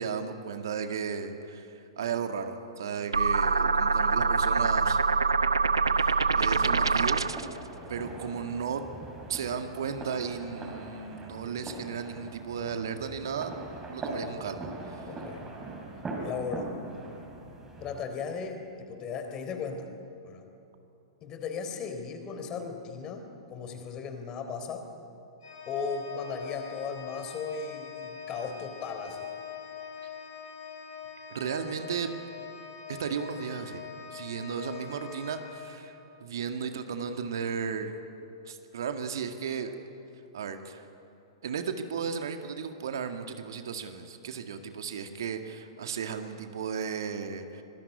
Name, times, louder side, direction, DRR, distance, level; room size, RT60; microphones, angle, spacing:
voice 1, 0.0-5.0 6.0-7.2 7.9-8.8 9.3-13.5 13.9-15.1 31.3-32.1 32.9-37.9 38.5-39.7 40.3-40.8 41.4-47.6, right 6 dB, 60° right, 7 dB, 2.0 m, -35 dB
sound 1, 3.1-7.5, right 4 dB, 75° right, 0.8 m, -25 dB
sound 2, 4.8-18.0, right 2 dB, 15° right, 5.2 m, -42 dB
voice 2, 15.1-15.5 16.2-16.7 17.8-19.9 20.2-20.5 21.2-24.9 25.7-29.3, left 5 dB, 25° left, 6 dB, 3.7 m, -37 dB
Organ, 25.4-36.3, left 7 dB, 60° left, 5.9 m, -43 dB
25.0 x 20.5 x 9.9 m, 2.8 s
figure-of-eight pair, 105°, 2 cm